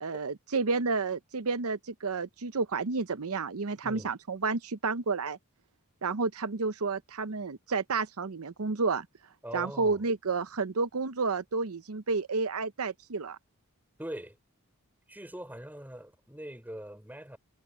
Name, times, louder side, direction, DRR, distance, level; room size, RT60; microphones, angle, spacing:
voice 1, 0.0-5.4 6.0-9.1 9.5-13.4, right 4 dB, 80° right, 0.8 m, -31 dB
voice 2, 9.4-10.0 14.0-14.4 15.1-17.4, right 1 dB, 10° right, 3.9 m, -42 dB
head